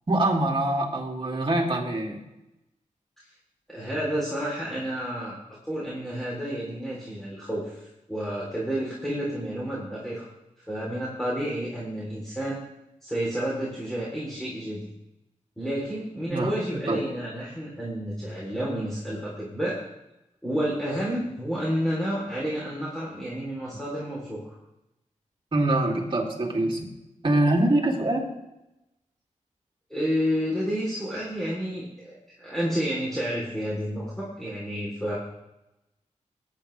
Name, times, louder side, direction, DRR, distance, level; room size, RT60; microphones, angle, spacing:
voice 1, 0.1-2.2 16.3-16.5 16.9-17.0 25.5-26.8 27.2-28.2, right 1 dB, 40° right, 0 dB, 2.7 m, -24 dB
voice 2, 3.7-5.4 5.7-10.3 10.6-12.6 13.0-14.9 15.6-19.8 20.4-24.4 29.9-35.2, equal, 5° left, -6 dB, 3.3 m, -30 dB
20.0 x 9.4 x 3.3 m, 0.91 s
wide cardioid pair, 95°, 13 cm